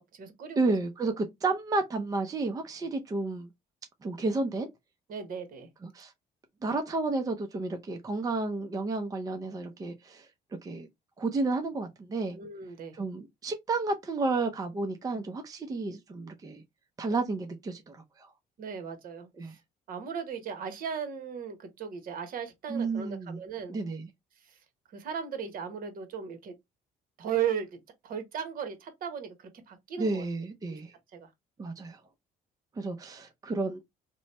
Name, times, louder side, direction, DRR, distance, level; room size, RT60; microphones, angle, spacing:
voice 1, 0.0-0.6 5.1-5.7 12.3-12.9 18.6-19.6 19.9-23.7 24.5-24.6 24.9-26.5 27.2-30.2 30.7-30.8 31.1-31.3, right 8 dB, 55° right, 1.1 m, -36 dB
voice 2, 0.6-3.5 4.0-4.7 5.8-6.1 6.6-10.3 10.6-10.9 11.2-12.4 12.9-16.6 17.0-18.3 19.4-19.6 22.7-23.4 23.7-24.1 30.0-30.9 31.6-32.0 32.8-33.8, right 3 dB, 20° right, 0.5 m, -31 dB
3.0 x 2.1 x 4.1 m
cardioid pair, 110°, 17 cm